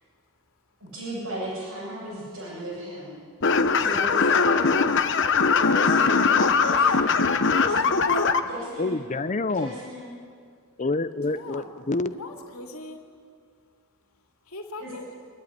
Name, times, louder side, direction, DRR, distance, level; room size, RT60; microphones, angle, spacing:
voice 1, 0.8-3.2 3.8-4.5 5.6-6.2 6.6-7.1 7.5-8.0 8.4-9.0 9.5-10.0 14.8-15.0, equal, 80° right, -8 dB, 7.2 m, -36 dB
sound 1, 3.4-8.4, left 5 dB, 55° left, 1.0 m, -21 dB
voice 2, 8.8-9.7 10.8-12.2, left 3 dB, 30° left, 12 dB, 0.6 m, -27 dB
voice 3, 11.3-11.7 12.1-13.0 14.5-15.1, equal, 70° left, 3 dB, 2.6 m, -36 dB
27.0 x 13.0 x 9.7 m, 2.2 s
head